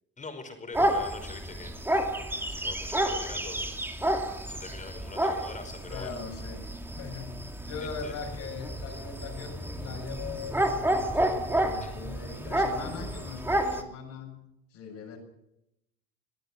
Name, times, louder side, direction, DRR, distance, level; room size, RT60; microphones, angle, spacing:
voice 1, 0.2-2.1 2.5-3.8 4.5-6.1 7.8-8.1 11.8-11.9, left 3 dB, 25° left, 7 dB, 5.4 m, -44 dB
sound 1, 0.7-13.8, right 1 dB, 5° right, 2.6 m, -30 dB
voice 2, 5.9-6.7 6.9-14.4 14.7-15.2, left 5 dB, 60° left, 0 dB, 6.9 m, -40 dB
23.0 x 14.5 x 7.8 m, 0.84 s
cardioid pair, 120°, 31 cm